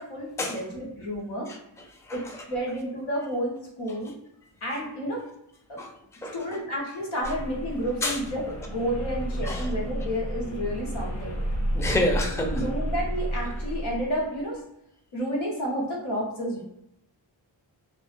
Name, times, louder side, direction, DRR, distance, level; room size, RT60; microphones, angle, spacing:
voice 1, 0.0-1.5 2.1-4.1 4.6-5.2 5.7-5.8 6.3-11.4 11.9-12.1 12.5-14.6 15.1-16.6, equal, 90° left, -2 dB, 1.0 m, -31 dB
voice 2, 6.2-6.6 8.0-8.2 9.4-9.7 11.7-12.6, left 1 dB, 5° left, 2 dB, 0.4 m, -28 dB
sound 1, 7.2-14.4, equal, 35° left, 0.7 m, -31 dB
2.4 x 2.0 x 2.5 m, 0.80 s
cardioid pair, 60°, 46 cm